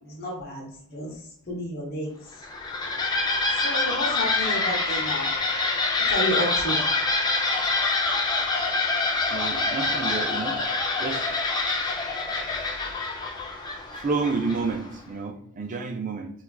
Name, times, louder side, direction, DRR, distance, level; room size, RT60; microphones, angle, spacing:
voice 1, 0.0-1.1 1.5-2.1 3.6-5.3 6.1-6.8, equal, 45° left, -2 dB, 0.9 m, -30 dB
sound 1, 2.3-14.9, left 3 dB, 20° left, 0.5 m, -26 dB
voice 2, 9.3-10.6 11.0-11.3 13.9-16.3, right 4 dB, 35° right, 5 dB, 0.4 m, -30 dB
4.5 x 2.4 x 2.3 m, 0.67 s
head